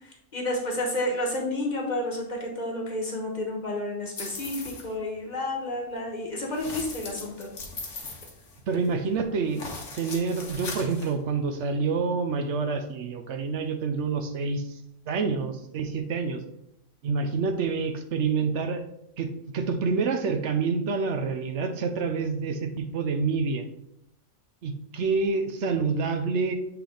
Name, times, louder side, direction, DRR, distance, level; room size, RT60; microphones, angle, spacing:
voice 1, 0.3-7.5, left 1 dB, 40° left, -1 dB, 1.2 m, -30 dB
sound 1, 4.2-4.9 6.5-8.9 9.5-11.1, left 3 dB, 80° left, 1.4 m, -39 dB
voice 2, 8.7-9.6 10.0-14.8 15.1-16.4 17.0-18.8 19.2-23.6 24.6-26.5, right 4 dB, 70° right, 7 dB, 0.9 m, -27 dB
7.4 x 3.5 x 3.8 m, 0.79 s
omnidirectional pair, 1.3 m